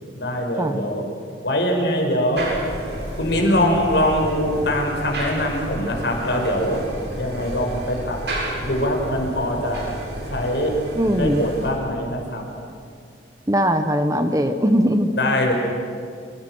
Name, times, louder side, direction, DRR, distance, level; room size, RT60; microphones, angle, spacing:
voice 1, 0.1-1.0 1.4-2.5 3.2-6.8 7.1-8.2 8.6-9.9 10.3-10.8 11.2-12.4 15.2-15.5, left 1 dB, 65° left, 2 dB, 5.3 m, -22 dB
sound 1, 2.4-11.7, right 1 dB, 60° right, 7.7 m, -31 dB
voice 2, 11.0-11.5 13.5-15.1, equal, 15° right, 8 dB, 1.1 m, -20 dB
27.0 x 26.0 x 6.3 m, 2.3 s
head